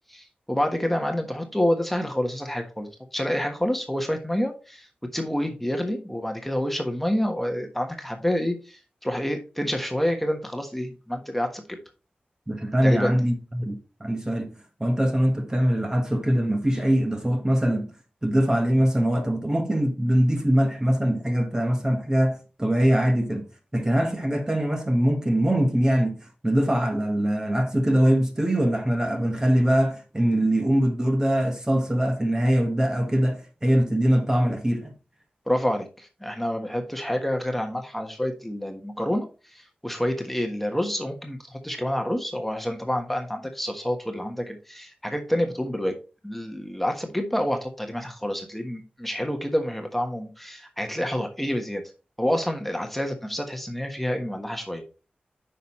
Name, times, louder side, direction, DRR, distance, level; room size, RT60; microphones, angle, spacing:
voice 1, 0.1-4.9 5.1-11.8 12.8-13.2 35.5-45.9 46.2-51.8 52.2-54.8, equal, 5° left, 1.3 m, -28 dB
voice 2, 12.5-14.5 14.8-17.9 18.2-23.5 23.7-34.9, equal, 20° right, 1.3 m, -22 dB
9.1 x 5.6 x 3.1 m
wide cardioid pair, 85°, 3 cm